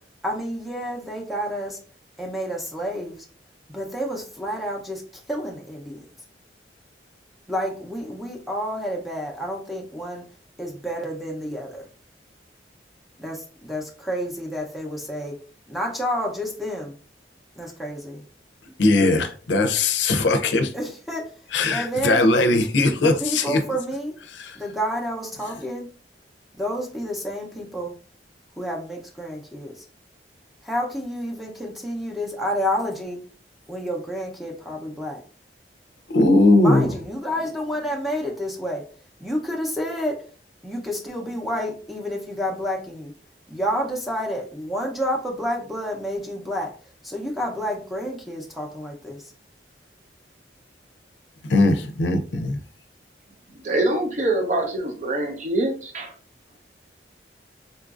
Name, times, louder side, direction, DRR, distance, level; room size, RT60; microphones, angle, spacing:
voice 1, 0.2-1.8 2.2-3.2 3.7-5.0 5.3-6.0 7.5-10.2 10.6-11.9 13.2-15.3 15.7-16.9 17.6-18.2 20.7-21.2 21.7-22.4 23.0-24.1 24.6-25.9 26.6-27.9 28.6-29.7 30.6-33.2 33.7-35.2 36.6-38.8 39.2-40.2 40.6-43.1 43.5-46.7 47.0-49.2, equal, ahead, 0.6 m, -29 dB
voice 2, 18.8-20.7 21.5-23.6 24.3-24.6 36.1-36.9 51.5-52.6, left 2 dB, 80° left, 0.5 m, -19 dB
voice 3, 53.6-56.1, right 2 dB, 40° right, 0.6 m, -24 dB
3.8 x 2.5 x 2.4 m
head